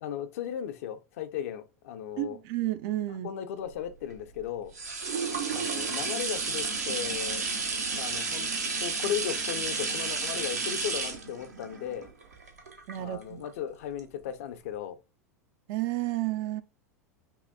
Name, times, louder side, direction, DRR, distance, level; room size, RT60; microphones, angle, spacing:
voice 1, 0.0-2.4 3.1-4.7 5.5-7.4 8.0-12.1 13.0-15.0, left 9 dB, 60° left, 0.4 m, -36 dB
voice 2, 2.2-3.3 12.9-13.4 15.7-16.6, right 15 dB, 45° right, 0.4 m, -31 dB
sound 1, 3.7-13.5 14.0-14.1, right 4 dB, 75° right, 0.8 m, -32 dB
5.5 x 2.2 x 2.6 m
figure-of-eight pair, 85°, 9 cm